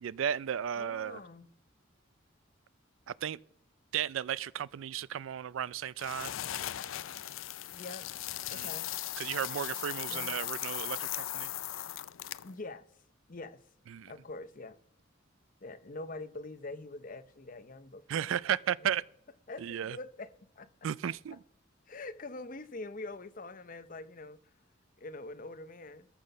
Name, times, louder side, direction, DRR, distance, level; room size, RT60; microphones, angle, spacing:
voice 1, 0.0-1.2 3.1-3.4 3.9-6.3 8.5-8.7 9.2-11.5 13.9-14.1 18.1-19.0 19.6-20.0 20.8-21.4, right 9 dB, 80° right, 0.4 m, -34 dB
voice 2, 0.8-1.5 7.7-8.2 8.5-8.9 10.1-10.3 12.4-12.8 13.3-13.6 14.1-14.8 15.6-18.4 19.5-20.3 20.6-20.7 21.9-24.4 25.0-26.1, left 2 dB, 45° left, 0.7 m, -44 dB
sound 1, 6.0-12.6, left 13 dB, 80° left, 0.4 m, -38 dB
14.0 x 5.8 x 5.5 m
head